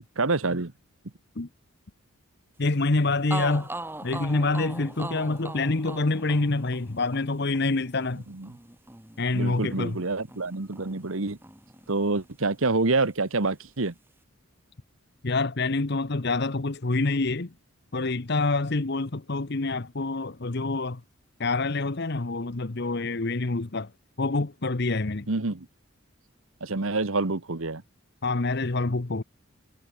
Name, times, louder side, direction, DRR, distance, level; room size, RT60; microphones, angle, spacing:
voice 1, 0.2-0.7 8.3-8.5 9.3-11.4 11.9-13.9 25.3-25.7 26.6-27.8, right 3 dB, 70° right, 1.4 m, -27 dB
voice 2, 2.6-3.7 4.0-8.2 9.2-10.0 15.2-17.5 17.9-21.0 21.4-23.9 24.2-25.3 28.2-29.2, left 3 dB, 50° left, 1.0 m, -26 dB
sound 1, 2.9-3.0 3.3-11.2 11.4-12.6, right 2 dB, 10° right, 2.2 m, -40 dB
head